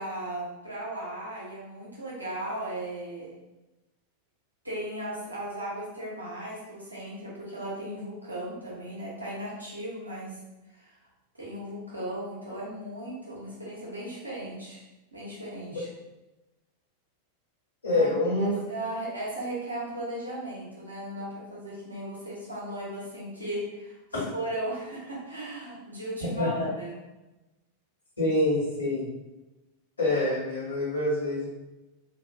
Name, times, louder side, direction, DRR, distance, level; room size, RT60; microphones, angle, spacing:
voice 1, 0.0-3.3 4.6-10.4 10.7-10.9 11.4-14.8 15.1-15.9 17.9-26.9, right 1 dB, 85° right, -6 dB, 1.0 m, -36 dB
voice 2, 17.8-18.6 24.1-24.2 26.4-26.7 28.2-29.0 30.0-31.5, left 1 dB, 75° left, -8 dB, 1.4 m, -26 dB
2.9 x 2.4 x 2.6 m, 1.0 s
figure-of-eight pair, 90°, 0 cm